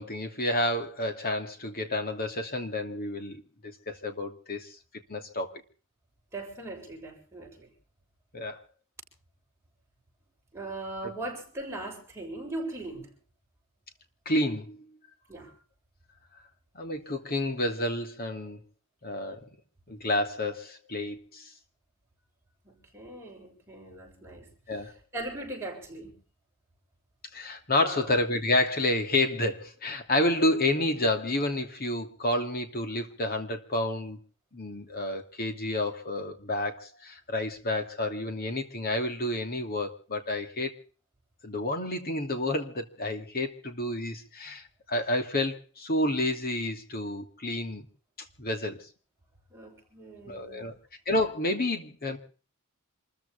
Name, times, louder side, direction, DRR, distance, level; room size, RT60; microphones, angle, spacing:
voice 1, 0.0-4.7 5.1-5.6 8.3-8.6 14.2-14.8 16.7-18.6 19.0-19.5 19.9-21.5 24.7-24.9 27.3-34.2 34.5-40.8 41.4-47.8 48.4-48.8 50.3-50.7 51.1-52.2, left 1 dB, 45° left, 2.8 m, -30 dB
voice 2, 6.3-7.7 10.5-13.1 15.3-15.5 22.6-24.5 25.1-26.1 27.8-28.1 49.5-50.7, right 2 dB, 10° right, 7.4 m, -39 dB
28.0 x 14.5 x 3.5 m
head